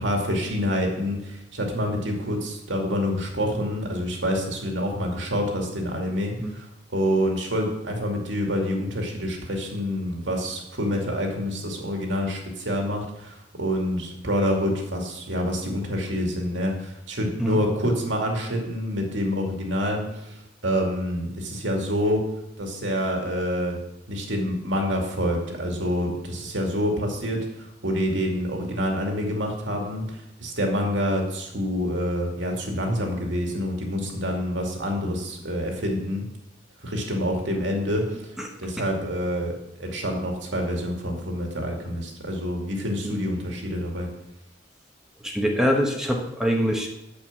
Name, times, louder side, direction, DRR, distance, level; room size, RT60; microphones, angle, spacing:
voice 1, 0.0-22.2 22.6-23.8 24.1-36.3 36.8-38.3 38.6-39.5 39.8-44.1, equal, 80° right, 1 dB, 2.4 m, -27 dB
voice 2, 45.2-46.9, equal, 5° right, 1 dB, 1.1 m, -24 dB
9.0 x 7.3 x 7.3 m, 0.87 s
head